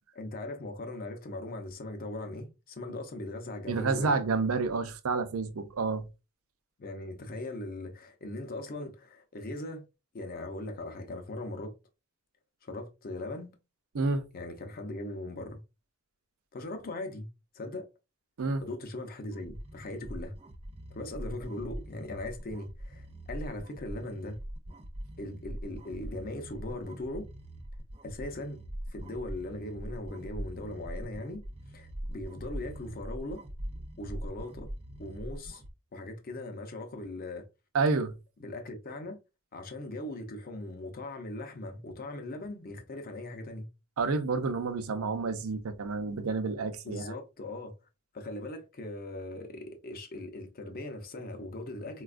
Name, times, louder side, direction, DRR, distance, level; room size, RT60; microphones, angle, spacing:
voice 1, 0.1-4.2 6.8-9.8 10.1-11.7 12.6-13.5 14.3-15.6 16.5-17.3 17.5-17.9 18.6-20.3 20.9-24.4 25.2-27.3 28.0-28.6 28.9-31.4 31.7-33.4 34.0-34.7 35.0-35.6 35.9-37.5 38.4-39.2 39.5-43.7 46.8-47.7 48.1-52.0, left 2 dB, 45° left, 0.6 m, -39 dB
voice 2, 3.7-6.0 13.9-14.2 18.4-18.6 37.7-38.1 44.0-47.1, right 4 dB, 80° right, 0.5 m, -29 dB
sound 1, 19.3-35.7, equal, 30° right, 0.5 m, -42 dB
4.1 x 2.3 x 2.4 m
head